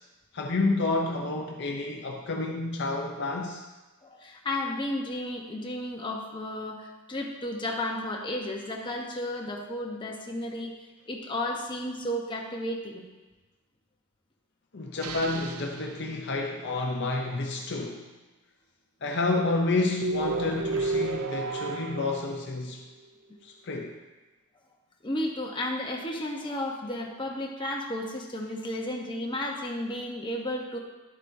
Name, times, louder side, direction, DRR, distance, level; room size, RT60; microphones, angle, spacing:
voice 1, 0.3-3.6 14.7-18.1 19.0-22.8 23.4-24.0, left 2 dB, 50° left, 1 dB, 0.6 m, -29 dB
voice 2, 4.0-10.7 11.1-13.1 25.0-30.8, left 1 dB, 20° left, 0 dB, 1.0 m, -33 dB
sound 1, 15.0-16.3 20.0-22.7, right 3 dB, 85° right, 0.6 m, -32 dB
11.0 x 8.0 x 2.7 m, 1.2 s
head